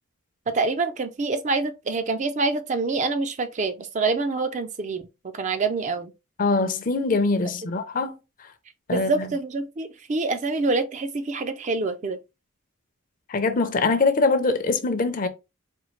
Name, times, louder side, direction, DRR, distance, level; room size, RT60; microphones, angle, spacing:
voice 1, 0.5-5.1 5.3-6.1 8.9-12.2, right 3 dB, 35° right, 0.4 m, -26 dB
voice 2, 6.4-8.2 8.9-9.3 13.3-15.3, left 3 dB, 40° left, 0.5 m, -23 dB
4.4 x 2.7 x 3.1 m
head